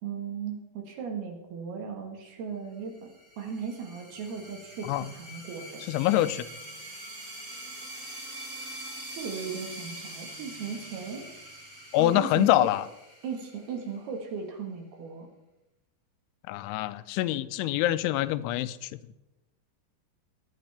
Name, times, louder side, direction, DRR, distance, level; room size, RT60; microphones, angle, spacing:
voice 1, 0.0-3.1 3.4-5.8 9.1-11.2 12.0-12.7 13.2-15.3, right 6 dB, 65° right, 2 dB, 3.2 m, -37 dB
sound 1, 2.9-14.2, right 1 dB, 35° right, 0.9 m, -44 dB
voice 2, 5.9-6.5 11.9-12.9 16.5-19.0, left 14 dB, 85° left, 14 dB, 3.0 m, -25 dB
22.5 x 9.1 x 3.4 m, 0.98 s
omnidirectional pair, 5.3 m